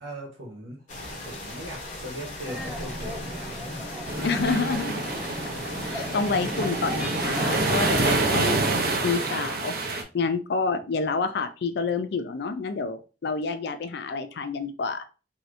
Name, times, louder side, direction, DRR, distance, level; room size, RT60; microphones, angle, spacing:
voice 1, 0.0-0.8 1.2-3.9 4.2-4.5 6.6-6.7, right 1 dB, 90° right, -2 dB, 1.0 m, -41 dB
sound 1, 0.9-8.1, left 1 dB, 45° left, 0.8 m, -38 dB
sound 2, 2.5-8.6, equal, 5° right, 0.5 m, -35 dB
sound 3, 4.1-10.0, right 3 dB, 55° right, 0.6 m, -27 dB
voice 2, 4.2-5.0 5.8-8.6 9.0-15.0, left 4 dB, 65° left, 9 dB, 0.4 m, -28 dB
3.2 x 2.8 x 2.5 m, 0.33 s
head